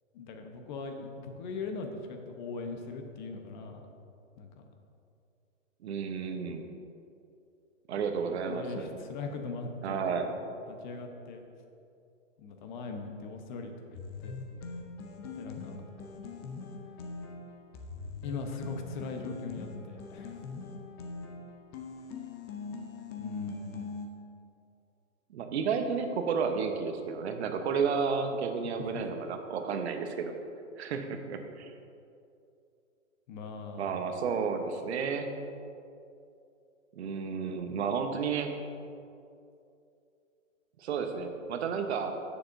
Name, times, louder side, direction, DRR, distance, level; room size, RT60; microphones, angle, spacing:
voice 1, 0.1-3.9 4.4-4.6 7.9-10.1 10.7-11.4 12.4-14.3 15.3-15.9 18.2-20.4 23.2-23.9 28.8-28.9 33.3-33.9, left 4 dB, 35° left, 4 dB, 1.0 m, -40 dB
voice 2, 5.8-6.7 7.9-8.9 9.8-10.3 25.3-30.3 30.8-31.7 33.8-35.3 36.9-38.6 40.8-42.1, right 5 dB, 55° right, 6 dB, 1.0 m, -32 dB
sound 1, 13.9-24.1, left 4 dB, 20° left, 0.5 m, -42 dB
15.0 x 6.9 x 2.6 m, 2.6 s
hypercardioid pair, 140°, 39 cm